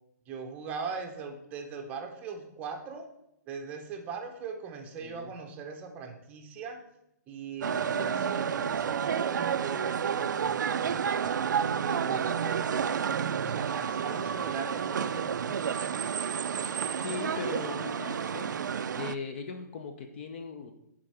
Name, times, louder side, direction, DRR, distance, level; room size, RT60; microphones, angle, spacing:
voice 1, 0.3-3.1 3.5-6.8 7.3-11.3 11.8-15.6, right 5 dB, 15° right, 3 dB, 0.7 m, -40 dB
voice 2, 5.0-5.3 17.0-18.6 18.9-20.7, left 5 dB, 40° left, 6 dB, 0.6 m, -39 dB
sound 1, 7.6-19.1, right 7 dB, 85° right, 0.4 m, -30 dB
8.7 x 3.8 x 4.7 m, 0.83 s
hypercardioid pair, 165°, 10 cm